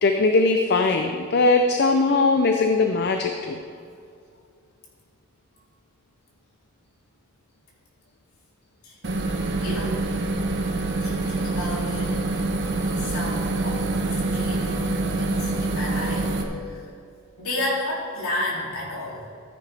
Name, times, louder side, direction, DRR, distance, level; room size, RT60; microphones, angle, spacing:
voice 1, 0.0-3.6, left 3 dB, 50° left, 5 dB, 0.5 m, -20 dB
sound 1, 9.0-16.4, right 2 dB, 55° right, 1.0 m, -26 dB
voice 2, 9.6-10.0 11.0-12.2 13.0-16.3 16.7-16.8 17.4-19.2, left 1 dB, 80° left, -4 dB, 2.8 m, -32 dB
13.5 x 9.9 x 3.4 m, 2.3 s
head